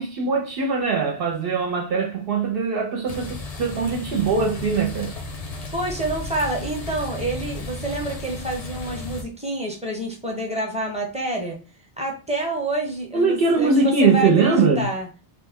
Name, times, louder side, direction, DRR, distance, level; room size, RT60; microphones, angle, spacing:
voice 1, 0.0-5.2 13.1-14.9, right 4 dB, 65° right, 0.8 m, -21 dB
sound 1, 3.1-9.2, left 2 dB, 40° left, 0.7 m, -34 dB
voice 2, 5.7-11.6 12.0-15.1, right 2 dB, 5° right, 0.7 m, -28 dB
3.1 x 2.1 x 3.5 m
omnidirectional pair, 1.1 m